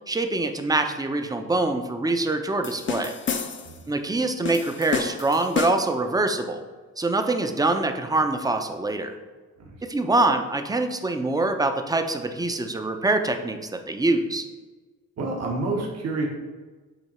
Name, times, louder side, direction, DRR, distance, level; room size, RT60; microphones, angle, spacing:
voice 1, 0.1-3.1 3.9-6.6 7.0-9.1 9.8-13.6 13.9-14.4, right 2 dB, 10° right, 6 dB, 0.6 m, -24 dB
sound 1, 2.6-3.8 4.4-6.0, left 6 dB, 40° left, 0.6 m, -30 dB
voice 2, 3.6-4.0 9.6-9.7 15.2-16.3, right 2 dB, 55° right, -1 dB, 1.3 m, -29 dB
7.9 x 2.9 x 4.2 m, 1.3 s
cardioid pair, 90°, 30 cm